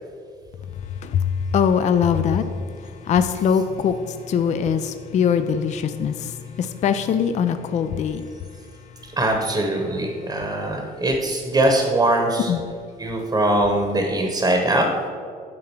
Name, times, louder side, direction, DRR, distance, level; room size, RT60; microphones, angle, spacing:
voice 1, 1.0-2.7 3.0-8.2 12.5-12.6, left 7 dB, 45° left, 10 dB, 0.4 m, -22 dB
voice 2, 9.2-12.5 13.0-14.9, right 1 dB, 20° right, 3 dB, 1.0 m, -21 dB
8.7 x 3.8 x 6.0 m, 2.2 s
cardioid pair, 110°, 17 cm